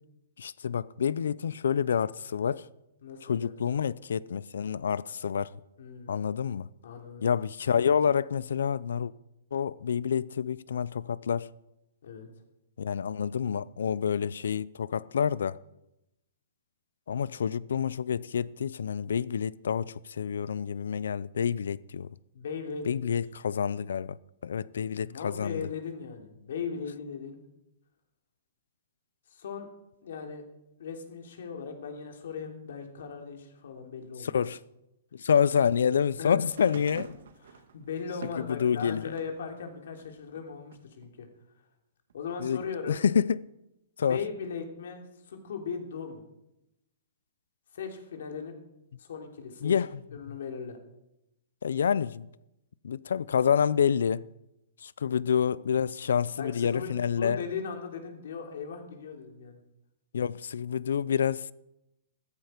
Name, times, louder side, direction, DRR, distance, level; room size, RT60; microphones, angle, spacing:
voice 1, 0.4-2.6 3.2-5.5 6.1-6.7 7.2-9.1 9.5-11.5 12.8-15.6 17.1-22.1 22.9-24.2 24.4-25.7 34.2-34.6 35.2-37.2 38.4-39.1 42.4-42.6 42.9-43.4 44.0-44.2 49.6-49.9 51.6-52.3 52.8-54.2 54.8-57.4 60.1-61.5, left 7 dB, 90° left, 0.5 m, -28 dB
voice 2, 3.0-3.8 5.8-6.1 6.8-7.3 12.0-12.3 22.3-23.1 25.0-27.4 29.3-29.7 30.0-30.4 30.8-34.4 36.2-36.4 37.4-41.3 42.1-43.0 44.0-46.2 47.7-48.5 49.0-49.7 50.1-50.8 55.1-55.2 56.4-59.6, left 6 dB, 65° left, 3.2 m, -38 dB
sound 1, 36.4-39.4 39.9-41.1 42.1-42.2, right 7 dB, 65° right, 1.8 m, -48 dB
15.0 x 14.0 x 5.1 m
hypercardioid pair, 175°, 0 cm